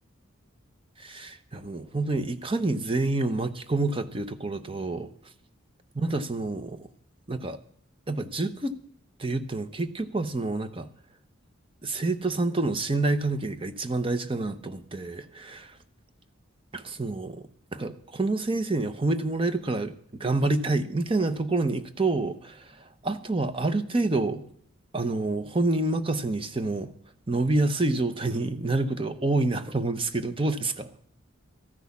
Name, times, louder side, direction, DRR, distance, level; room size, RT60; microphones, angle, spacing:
voice 1, 1.0-5.1 5.9-6.9 7.3-7.6 8.1-8.8 9.2-10.9 11.8-15.8 16.7-24.4 24.9-26.9 27.3-30.9, right 2 dB, 25° right, 0.7 m, -28 dB
13.5 x 6.2 x 8.3 m
head